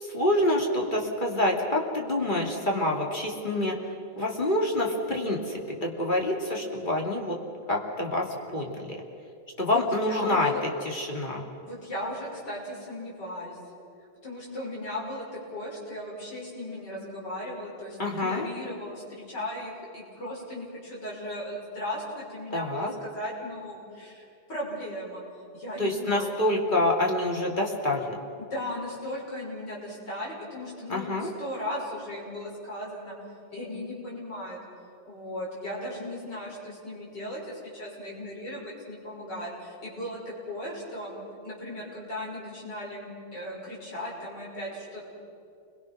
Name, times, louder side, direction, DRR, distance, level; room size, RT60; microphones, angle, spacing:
voice 1, 0.0-3.8 4.2-7.4 7.7-9.0 9.6-11.5 18.0-18.5 22.5-22.9 25.8-28.2 30.9-31.3, left 1 dB, 20° left, -1 dB, 2.9 m, -27 dB
voice 2, 9.6-10.6 11.6-13.6 14.2-25.2 25.5-26.4 28.4-33.2 33.5-34.6 35.1-41.2 41.4-45.0, left 1 dB, 50° left, -4 dB, 6.9 m, -37 dB
29.0 x 22.5 x 6.2 m, 2.5 s
omnidirectional pair, 2.3 m